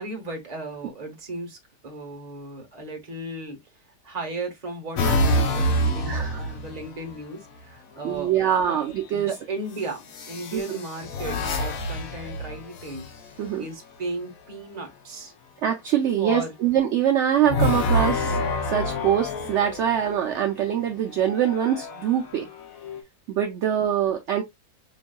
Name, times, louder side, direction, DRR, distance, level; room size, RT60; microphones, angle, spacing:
voice 1, 0.0-1.6 1.8-3.6 4.0-8.3 8.6-8.8 9.1-13.1 13.6-15.3 16.2-16.5, right 2 dB, 30° right, 0.9 m, -35 dB
sound 1, 5.0-7.2 8.5-9.0 10.1-13.5 17.4-20.4 21.1-23.0, left 1 dB, 65° left, 1.1 m, -27 dB
voice 2, 6.1-6.4 8.0-9.3 10.5-10.8 13.4-13.6 15.6-22.5 23.3-24.4, right 9 dB, 70° right, 0.7 m, -24 dB
5.2 x 2.6 x 2.2 m
omnidirectional pair, 1.7 m